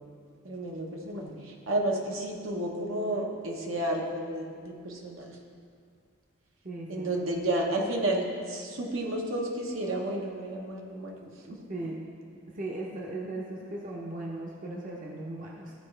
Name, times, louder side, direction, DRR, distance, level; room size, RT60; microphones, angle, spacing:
voice 1, 0.4-5.4 6.9-11.2, right 1 dB, 75° right, 0 dB, 1.0 m, -31 dB
voice 2, 6.6-7.2 11.2-12.0 12.5-15.7, right 2 dB, 40° right, -2 dB, 0.8 m, -38 dB
14.0 x 4.7 x 3.3 m, 2.2 s
head